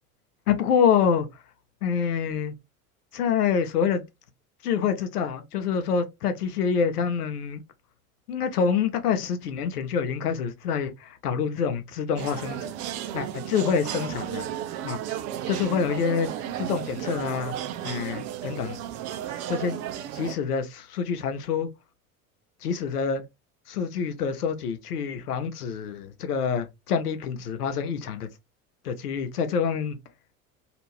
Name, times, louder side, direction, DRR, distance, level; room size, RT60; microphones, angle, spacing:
voice 1, 0.5-1.3 1.8-2.5 3.1-4.0 4.6-7.6 8.3-12.7 13.1-14.5 14.8-15.0 15.5-16.3 16.6-17.6 17.8-18.8 19.3-19.8 20.1-21.7 22.6-23.2 23.7-28.3 28.8-30.0, left 6 dB, 80° left, 0.8 m, -26 dB
sound 1, 12.2-20.4, right 11 dB, 35° right, 0.4 m, -34 dB
2.8 x 2.5 x 3.1 m
hypercardioid pair, 75°, 45 cm